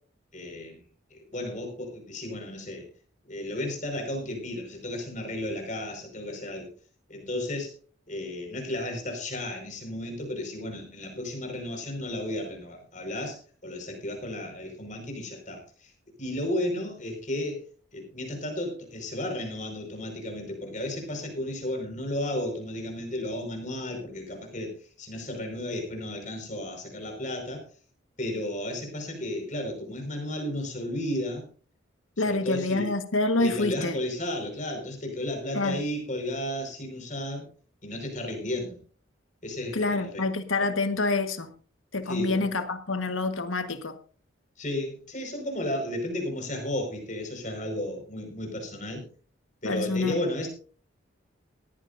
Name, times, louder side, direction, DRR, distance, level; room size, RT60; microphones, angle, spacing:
voice 1, 0.3-0.8 1.1-2.8 3.2-6.7 7.1-7.7 8.1-15.9 16.2-17.6 17.9-27.6 28.2-31.5 32.2-32.9 33.4-37.5 37.8-38.8 39.4-40.2 40.6-40.7 42.1-42.4 44.6-49.0 49.6-50.5, left 1 dB, 40° left, 5.1 m, -33 dB
voice 2, 32.2-34.0 35.5-35.8 39.7-41.5 41.9-44.0 49.6-50.2, left 3 dB, 80° left, 1.5 m, -27 dB
18.5 x 15.0 x 2.6 m
head